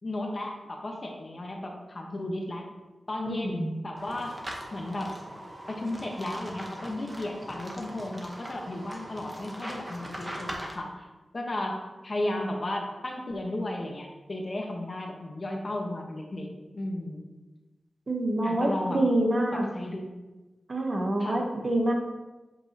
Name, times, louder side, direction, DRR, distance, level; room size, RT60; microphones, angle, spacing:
voice 1, 0.0-2.7 3.1-4.4 4.7-5.2 5.7-11.1 11.3-16.5 16.7-17.2 18.4-19.0 19.5-20.1 21.2-21.4, left 1 dB, 40° left, 1 dB, 1.2 m, -34 dB
voice 2, 3.3-3.8 18.1-19.7 20.7-21.9, right 1 dB, 45° right, 1 dB, 1.1 m, -26 dB
sound 1, 4.0-10.7, equal, 15° right, 1.1 m, -41 dB
8.0 x 5.3 x 2.9 m, 1.1 s
wide cardioid pair, 85°, 0 cm